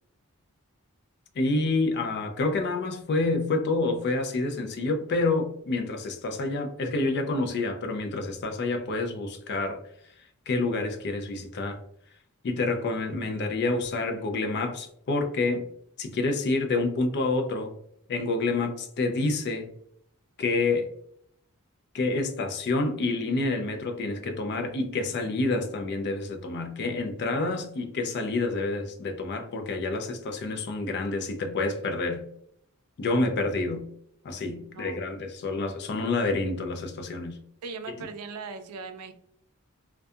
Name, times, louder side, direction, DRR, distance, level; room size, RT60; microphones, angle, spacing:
voice 1, 1.4-9.8 10.5-11.8 12.4-15.7 16.0-17.7 18.1-19.7 20.4-20.9 21.9-32.2 33.0-33.8 34.2-37.4, left 3 dB, 50° left, 5 dB, 0.4 m, -28 dB
voice 2, 34.6-35.0 37.6-39.1, right 4 dB, 85° right, 8 dB, 0.4 m, -39 dB
2.3 x 2.2 x 2.6 m, 0.71 s
head